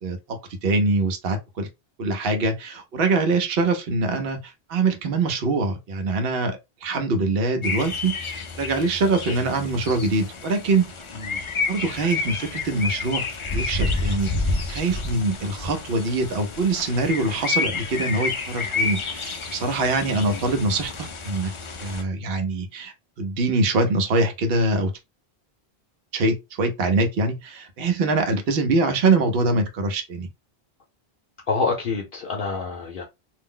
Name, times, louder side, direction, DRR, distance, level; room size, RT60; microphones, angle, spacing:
voice 1, 0.0-1.7 2.0-10.9 11.4-21.5 21.8-24.9 26.1-30.3, right 3 dB, 70° right, 0.9 m, -24 dB
sound 1, 7.6-22.0, left 3 dB, 45° left, 0.4 m, -30 dB
voice 2, 20.0-20.4 31.5-33.0, left 4 dB, 60° left, 0.8 m, -27 dB
2.5 x 2.0 x 3.7 m
omnidirectional pair, 1.0 m